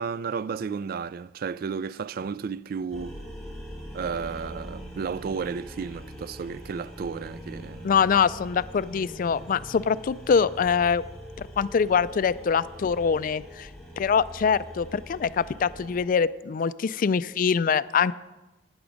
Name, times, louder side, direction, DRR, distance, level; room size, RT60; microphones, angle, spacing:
voice 1, 0.0-3.2 3.9-7.9, right 5 dB, 55° right, 0.3 m, -33 dB
sound 1, 2.9-16.0, equal, 5° left, 3.7 m, -42 dB
voice 2, 7.8-11.0 11.4-13.7 14.0-18.1, left 6 dB, 50° left, 0.3 m, -24 dB
12.0 x 9.6 x 5.1 m
head